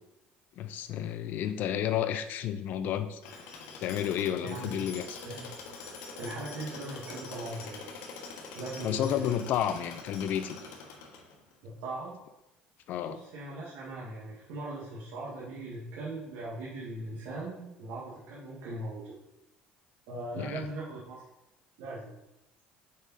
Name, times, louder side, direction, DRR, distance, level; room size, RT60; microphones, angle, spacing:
voice 1, 0.6-3.2 3.8-5.2 8.8-10.6 12.9-13.2 20.4-20.6, left 10 dB, 60° left, 11 dB, 0.6 m, -31 dB
Tools, 3.2-11.5, left 4 dB, 85° left, 1.3 m, -45 dB
voice 2, 4.4-4.8 5.2-5.5 6.2-7.8 8.5-9.3 11.6-12.2 13.1-19.2 20.1-21.2 21.8-22.1, right 2 dB, 80° right, -7 dB, 2.1 m, -39 dB
7.8 x 5.4 x 4.2 m, 0.92 s
cardioid pair, 115°, 4 cm